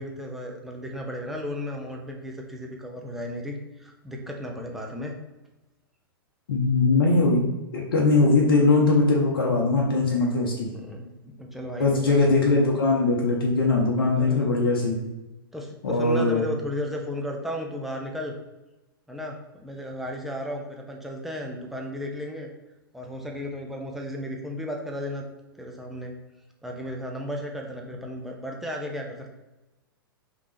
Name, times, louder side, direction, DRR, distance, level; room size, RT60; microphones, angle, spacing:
voice 1, 0.0-5.1 8.2-8.4 10.7-12.2 14.2-14.5 15.5-18.3 19.1-22.5 22.9-25.2 25.6-26.1 26.6-29.3, equal, ahead, 0 dB, 0.7 m, -34 dB
voice 2, 6.5-7.4 7.7-10.7 11.8-15.0 15.8-16.4, left 3 dB, 70° left, -1 dB, 0.8 m, -21 dB
5.1 x 3.0 x 3.2 m, 1.0 s
figure-of-eight pair, 105°, 12 cm